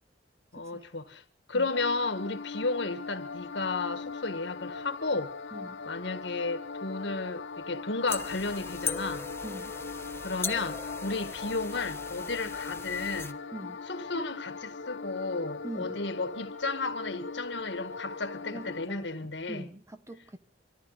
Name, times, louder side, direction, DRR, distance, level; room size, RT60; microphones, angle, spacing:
voice 1, 0.5-1.2 1.5-5.3 5.9-9.3 10.2-13.4 13.9-19.7, left 3 dB, 70° left, 1.7 m, -33 dB
sound 1, 1.7-18.9, left 4 dB, 85° left, 0.9 m, -40 dB
voice 2, 5.5-5.8 9.4-9.7 13.5-13.8 15.6-16.0 18.5-20.4, right 1 dB, 15° right, 1.0 m, -43 dB
sound 2, 8.1-13.3, left 4 dB, 15° left, 1.0 m, -39 dB
25.0 x 14.0 x 4.0 m
head